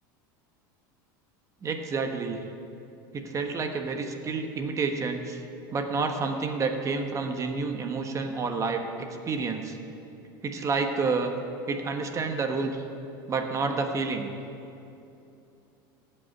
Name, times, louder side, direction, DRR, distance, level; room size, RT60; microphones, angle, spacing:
voice 1, 1.6-2.4 3.1-5.4 5.7-9.8 10.4-11.3 11.7-12.8 13.3-14.3, right 4 dB, 30° right, 5 dB, 1.2 m, -29 dB
15.5 x 5.6 x 8.4 m, 2.8 s
supercardioid pair, 115°, 11 cm